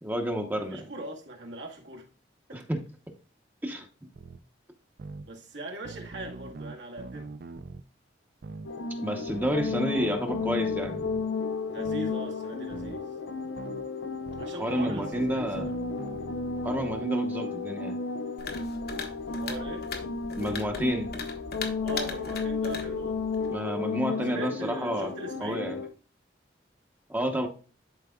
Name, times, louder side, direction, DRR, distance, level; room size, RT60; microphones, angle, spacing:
voice 1, 0.0-0.8 2.5-2.8 3.6-3.9 9.0-11.0 14.6-15.7 16.6-18.0 20.4-21.1 23.5-25.1 25.4-25.8 27.1-27.5, equal, 10° right, 0.8 m, -30 dB
voice 2, 0.6-2.1 2.5-2.6 5.2-7.3 11.7-13.1 14.4-15.7 19.3-19.9 21.8-23.2 24.3-25.7, right 1 dB, 75° right, 1.9 m, -40 dB
sound 1, 4.1-4.4 5.0-5.2 5.8-7.8 8.4-8.7 9.3-11.2 11.8-12.1 12.7-13.0 13.6-13.8 14.2-17.0, right 3 dB, 55° right, 0.4 m, -42 dB
sound 2, 8.6-25.9, left 4 dB, 85° left, 0.6 m, -33 dB
sound 3, 18.4-23.6, left 4 dB, 55° left, 1.1 m, -39 dB
11.5 x 4.7 x 2.3 m
head